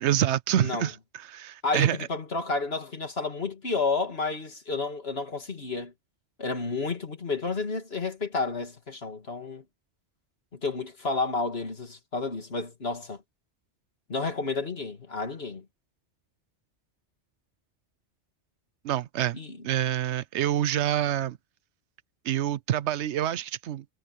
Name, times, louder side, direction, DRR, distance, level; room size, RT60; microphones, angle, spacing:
voice 1, 0.0-2.0 18.8-19.4 19.6-21.4 22.3-23.8, right 11 dB, 75° right, 0.9 m, -27 dB
voice 2, 0.6-0.9 1.6-5.9 6.4-9.6 10.6-13.2 14.1-15.6 19.3-19.6, left 3 dB, 60° left, 2.7 m, -31 dB
omnidirectional pair, 1.2 m